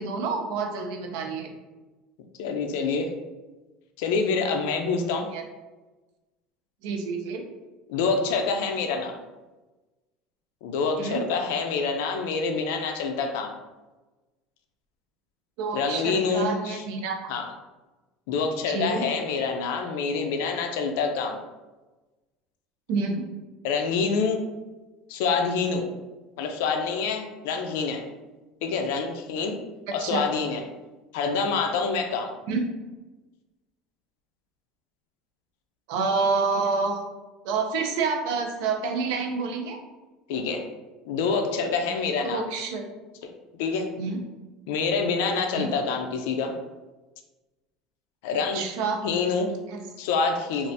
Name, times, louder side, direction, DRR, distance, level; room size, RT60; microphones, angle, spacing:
voice 1, 0.0-1.5 5.3-5.4 6.8-7.5 11.0-11.2 15.6-17.3 18.7-19.1 22.9-23.2 30.0-30.3 32.5-32.6 35.9-37.0 37.4-39.8 42.2-42.9 44.0-44.2 45.5-45.7 48.5-49.0 49.7-49.8, right 4 dB, 70° right, 3 dB, 0.5 m, -28 dB
voice 2, 2.4-3.1 4.0-5.3 7.9-9.2 10.6-13.5 15.7-16.8 17.3-17.5 18.3-21.4 23.6-24.4 25.1-25.9 26.4-28.1 28.6-29.6 29.9-30.6 31.1-32.3 40.3-40.7 41.1-42.4 43.5-43.9 44.7-46.5 48.2-48.6 49.0-49.5 50.0-50.7, left 4 dB, 80° left, 5 dB, 0.4 m, -26 dB
3.2 x 2.4 x 2.6 m, 1.2 s
cardioid pair, 155°, 0 cm